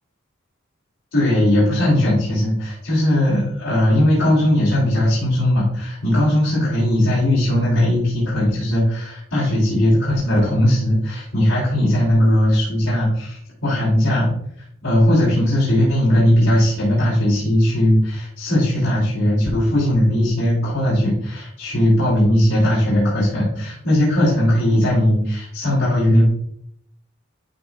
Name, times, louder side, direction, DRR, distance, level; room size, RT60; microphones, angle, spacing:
voice 1, 1.1-14.3 14.8-26.2, left 1 dB, 85° left, -8 dB, 3.1 m, -18 dB
12.0 x 5.0 x 2.4 m, 0.70 s
head